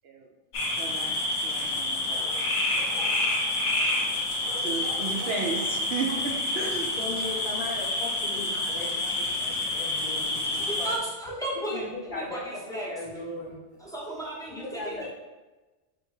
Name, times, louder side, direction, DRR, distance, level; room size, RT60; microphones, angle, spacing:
sound 1, 0.5-11.0, left 2 dB, 85° left, 1.2 m, -28 dB
voice 1, 0.8-2.3 3.4-3.5 4.6-7.0, right 4 dB, 65° right, 1 dB, 0.7 m, -34 dB
voice 2, 7.0-10.9 11.7-12.4 12.7-13.9 14.5-15.1, left 2 dB, 50° left, -4 dB, 0.9 m, -38 dB
voice 3, 10.5-12.9 13.8-15.1, right 1 dB, 5° left, -5 dB, 0.7 m, -35 dB
3.3 x 2.7 x 4.6 m, 1.2 s
omnidirectional pair, 1.2 m